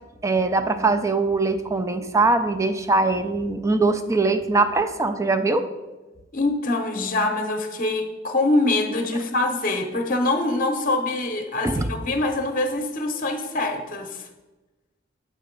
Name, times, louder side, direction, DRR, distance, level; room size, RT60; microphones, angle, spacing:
voice 1, 0.2-5.7 11.6-11.9, right 3 dB, 15° right, 9 dB, 0.4 m, -22 dB
voice 2, 6.3-14.3, left 2 dB, 45° left, 5 dB, 0.8 m, -24 dB
7.5 x 4.0 x 5.1 m, 1.1 s
head